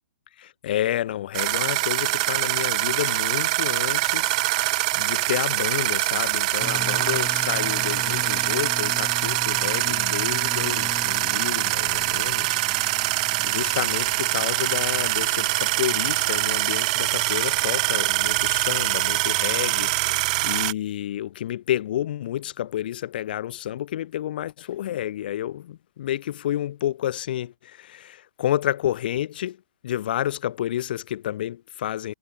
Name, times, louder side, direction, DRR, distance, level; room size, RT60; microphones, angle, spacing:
voice 1, 0.4-4.4 4.9-12.6 13.4-29.6 29.8-32.1, left 12 dB, 55° left, 3.1 m, -30 dB
sound 1, 1.3-20.7, right 20 dB, 40° right, 1.2 m, -24 dB
sound 2, 6.6-16.2, left 5 dB, 10° left, 4.3 m, -39 dB
hypercardioid pair, 150°, 6 cm